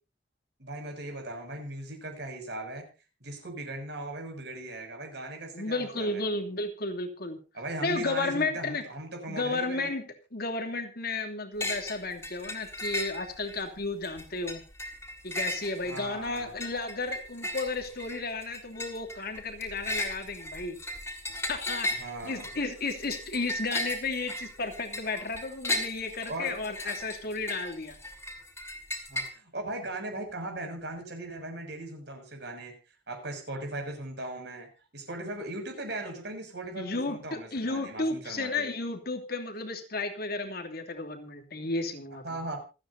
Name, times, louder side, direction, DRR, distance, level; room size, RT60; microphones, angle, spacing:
voice 1, 0.6-2.9 3.2-6.2 7.5-9.9 15.8-16.5 21.9-22.5 26.3-26.6 29.1-32.7 33.1-34.7 34.9-38.7 42.2-42.6, right 2 dB, 65° right, 3 dB, 6.9 m, -38 dB
voice 2, 5.5-7.4 7.8-8.8 9.3-10.0 10.3-14.6 15.2-20.8 21.5-28.0 36.8-42.2, left 3 dB, 55° left, 4 dB, 2.9 m, -33 dB
sound 1, 11.6-12.0 12.2-13.6 14.0-29.3, left 1 dB, 15° left, 4.1 m, -36 dB
27.5 x 9.6 x 2.8 m, 0.32 s
head